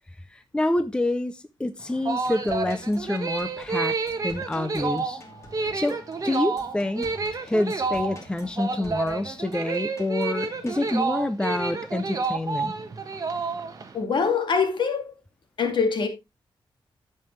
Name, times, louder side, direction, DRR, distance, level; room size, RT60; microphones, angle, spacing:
voice 1, 0.3-4.0 4.2-5.2 5.7-6.0 6.2-12.7, left 2 dB, 10° left, 0.5 m, -27 dB
sound 1, 1.8-13.9, right 4 dB, 40° right, 1.4 m, -29 dB
sound 2, 2.2-11.1, left 1 dB, 30° left, 2.8 m, -47 dB
voice 2, 13.9-15.1 15.6-16.1, left 5 dB, 60° left, 2.3 m, -23 dB
16.0 x 5.5 x 3.2 m
wide cardioid pair, 165°, 9 cm